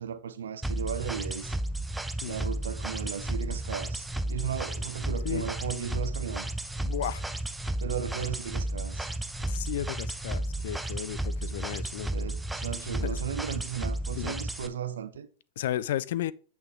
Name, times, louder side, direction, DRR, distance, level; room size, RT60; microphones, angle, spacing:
voice 1, 0.0-1.6 2.2-6.5 7.8-9.1 12.1-15.3, right 8 dB, 65° right, 0.7 m, -35 dB
sound 1, 0.6-14.7, right 1 dB, 5° right, 0.6 m, -33 dB
voice 2, 6.8-7.2 9.5-12.1 13.0-13.2 14.2-14.4 15.6-16.3, left 12 dB, 55° left, 0.3 m, -33 dB
8.8 x 5.8 x 3.3 m
figure-of-eight pair, 90°, 0 cm